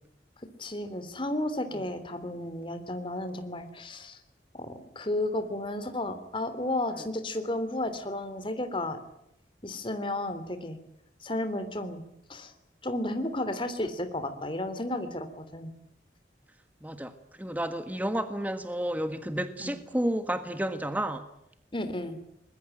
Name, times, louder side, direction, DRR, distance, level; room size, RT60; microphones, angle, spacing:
voice 1, 0.6-4.2 4.5-9.0 9.6-10.8 11.2-12.0 12.3-12.5 12.8-15.7 19.6-19.7 21.7-22.2, left 1 dB, 30° left, 9 dB, 3.2 m, -33 dB
voice 2, 16.8-21.3, right 1 dB, 10° right, 9 dB, 1.5 m, -31 dB
23.5 x 21.5 x 9.2 m, 0.78 s
head